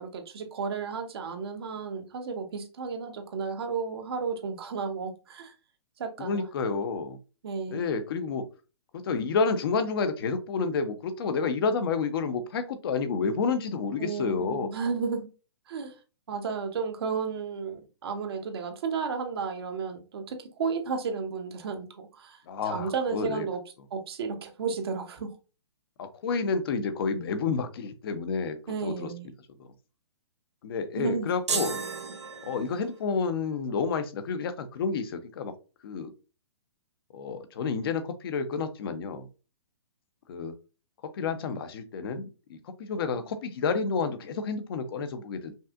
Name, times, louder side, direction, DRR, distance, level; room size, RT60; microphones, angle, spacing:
voice 1, 0.0-5.5 6.0-6.5 7.4-7.8 14.0-15.3 15.7-15.9 16.3-22.4 22.7-23.6 23.9-25.3 28.7-29.3 30.9-31.3, right 5 dB, 60° right, 1.0 m, -33 dB
voice 2, 6.2-7.2 7.7-8.5 8.9-14.7 22.5-23.5 26.0-29.1 29.6-29.7 30.6-31.8 32.4-35.5 35.8-36.1 37.1-39.3 40.3-40.6 41.0-45.5, left 5 dB, 55° left, 0.8 m, -30 dB
sound 1, 31.5-33.0, right 4 dB, 85° right, 0.8 m, -33 dB
5.4 x 2.5 x 2.4 m
hypercardioid pair, 125°, 14 cm